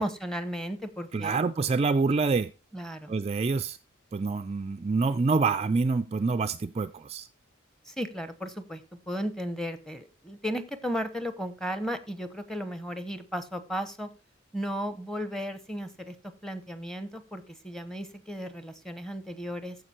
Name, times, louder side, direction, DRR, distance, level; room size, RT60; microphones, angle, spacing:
voice 1, 0.0-1.4 2.7-3.1 7.9-14.1 14.5-16.1 16.4-19.8, equal, ahead, 1.0 m, -35 dB
voice 2, 1.1-2.5 3.1-3.8 4.1-7.3, right 4 dB, 30° right, 0.4 m, -26 dB
14.5 x 5.2 x 4.3 m
head